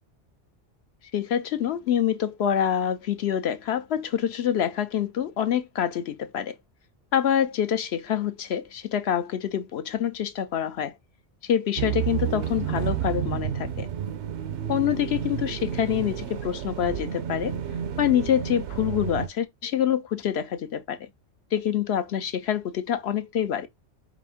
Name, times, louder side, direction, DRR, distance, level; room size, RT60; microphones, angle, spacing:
voice 1, 1.1-6.5 7.1-10.9 11.4-13.9 14.7-17.6 18.0-21.1 21.5-23.7, left 9 dB, 70° left, 0.8 m, -26 dB
sound 1, 11.8-19.3, right 9 dB, 75° right, 0.9 m, -30 dB
4.9 x 2.5 x 3.5 m
omnidirectional pair, 1.2 m